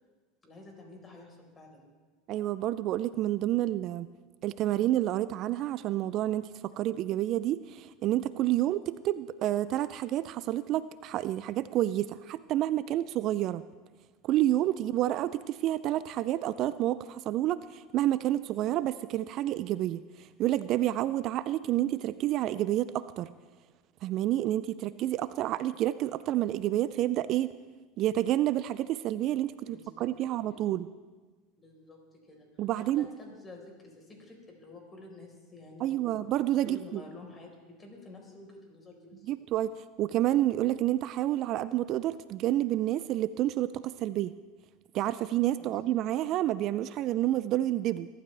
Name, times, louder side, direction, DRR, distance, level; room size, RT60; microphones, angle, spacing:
voice 1, 0.4-1.8 29.6-30.6 31.6-32.0 32.3-36.1 36.6-39.4 45.6-46.0, left 2 dB, 25° left, 1 dB, 4.4 m, -50 dB
voice 2, 2.3-4.1 4.4-13.6 14.2-23.3 24.0-27.5 28.0-29.5 30.0-30.9 32.6-33.1 35.8-37.0 39.3-39.7 40.0-44.3 44.9-48.1, right 13 dB, 50° right, 16 dB, 0.4 m, -29 dB
22.0 x 12.0 x 3.4 m, 1.4 s
hypercardioid pair, 85°, 0 cm